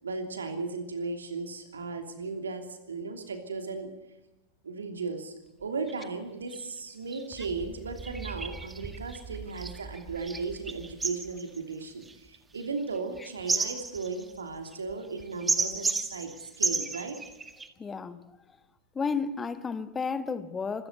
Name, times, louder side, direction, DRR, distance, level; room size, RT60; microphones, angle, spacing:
voice 1, 0.0-3.9 4.6-5.3 5.6-17.2, right 4 dB, 70° right, 3.0 m, -36 dB
sound 1, 5.6-5.7 5.9-6.0 6.5-6.6 7.1-17.7, right 4 dB, 10° right, 1.8 m, -34 dB
voice 2, 17.8-18.6 18.9-20.9, left 5 dB, 15° left, 1.5 m, -33 dB
25.5 x 14.0 x 8.2 m
figure-of-eight pair, 90°, 0 cm